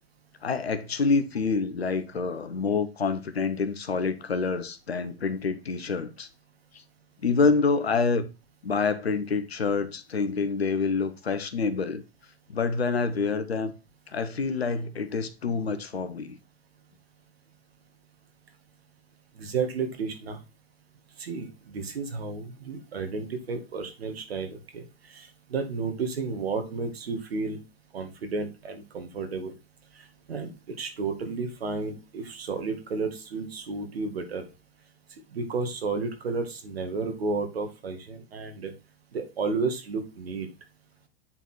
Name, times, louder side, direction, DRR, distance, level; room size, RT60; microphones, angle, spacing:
voice 1, 0.4-6.3 6.7-6.8 7.2-8.3 8.6-12.0 12.5-13.7 14.1-16.4, left 4 dB, 90° left, 1.1 m, -27 dB
voice 2, 19.4-20.4 21.2-27.6 27.9-29.5 29.9-34.5 35.3-38.7 39.1-40.5, right 4 dB, 80° right, 2.2 m, -32 dB
8.9 x 4.2 x 4.5 m
hypercardioid pair, 95°, 30 cm